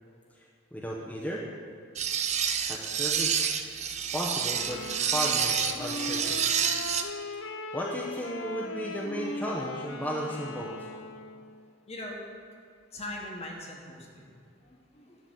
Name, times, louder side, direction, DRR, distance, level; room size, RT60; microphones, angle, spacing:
voice 1, 0.3-1.4 2.7-3.4 4.1-6.5 7.7-10.9, equal, 10° left, -5 dB, 0.9 m, -35 dB
sound 1, 2.0-7.0, right 8 dB, 35° right, 0.5 m, -28 dB
Wind instrument woodwind instrument, 4.5-11.7, left 3 dB, 85° left, 0.6 m, -39 dB
voice 2, 11.9-12.2 12.9-14.3 14.6-15.2, left 1 dB, 35° left, -1 dB, 1.5 m, -41 dB
12.0 x 4.0 x 7.8 m, 2.4 s
head